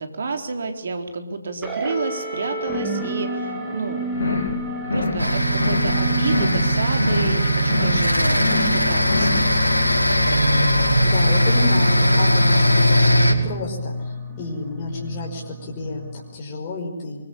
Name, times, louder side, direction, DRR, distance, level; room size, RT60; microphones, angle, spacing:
voice 1, 0.0-4.0 4.9-9.5, right 4 dB, 55° right, 6 dB, 4.0 m, -30 dB
sound 1, 1.6-16.4, equal, 5° right, 4.5 m, -32 dB
sound 2, 4.1-4.6 4.8-5.3 5.5-6.0 6.2-6.7 6.9-7.4 7.6-8.1 8.3-8.8 9.0-9.5, left 3 dB, 60° left, 5.6 m, -25 dB
sound 3, 5.2-13.3, equal, 90° left, 5.0 m, -19 dB
voice 2, 11.0-17.3, left 2 dB, 30° left, -2 dB, 5.5 m, -30 dB
24.0 x 24.0 x 8.7 m, 1.0 s
figure-of-eight pair, 140°, 0 cm